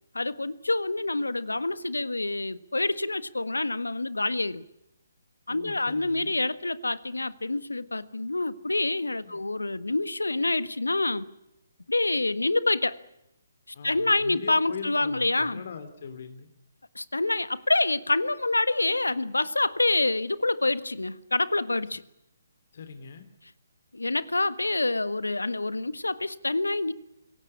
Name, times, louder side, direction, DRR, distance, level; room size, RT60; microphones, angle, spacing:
voice 1, 0.1-4.6 5.5-11.3 11.9-13.0 13.8-15.6 16.9-22.0 23.9-26.9, left 2 dB, 90° left, 1.4 m, -27 dB
voice 2, 5.5-6.3 9.2-9.4 13.7-16.5 22.7-23.3, left 6 dB, 55° left, 2.9 m, -41 dB
26.0 x 17.0 x 9.7 m
figure-of-eight pair, 145°, 0 cm